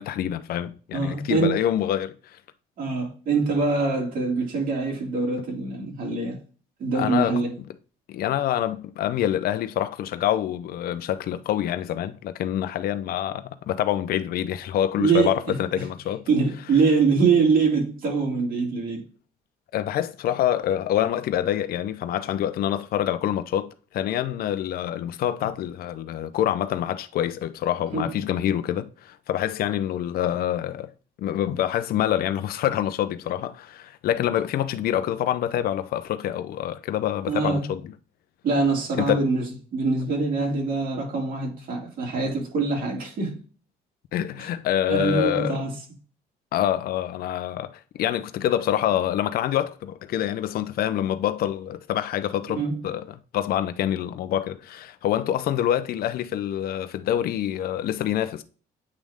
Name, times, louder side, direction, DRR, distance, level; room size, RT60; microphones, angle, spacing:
voice 1, 0.0-2.4 6.9-7.4 8.1-16.3 19.7-30.9 31.2-37.8 39.0-39.2 44.1-45.6 46.5-58.4, left 11 dB, 65° left, 0.7 m, -26 dB
voice 2, 0.9-1.6 2.8-6.4 6.8-7.5 15.0-15.4 16.3-19.0 27.9-28.0 37.3-37.7 38.4-39.5 39.7-43.4 44.4-44.5 44.9-45.7 52.5-52.8, right 4 dB, 55° right, 3.0 m, -24 dB
8.6 x 3.1 x 3.6 m
cardioid pair, 110°, 17 cm